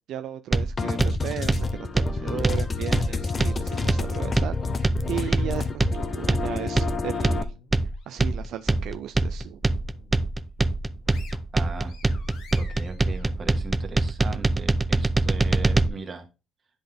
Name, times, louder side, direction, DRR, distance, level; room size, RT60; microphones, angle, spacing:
voice 1, 0.1-4.6 5.1-7.5 8.1-9.6, right 11 dB, 70° right, 0.4 m, -35 dB
sound 1, 0.5-15.9, right 2 dB, 15° right, 0.5 m, -24 dB
sound 2, 0.8-7.4, left 4 dB, 25° left, 0.7 m, -29 dB
sound 3, 4.6-6.6 7.1-8.5 8.9-9.1 9.5-10.3 10.7-14.2, left 5 dB, 75° left, 1.7 m, -52 dB
voice 2, 11.5-11.9 12.6-16.3, right 4 dB, 30° right, 1.5 m, -38 dB
10.5 x 3.9 x 3.5 m
cardioid pair, 125°, 0 cm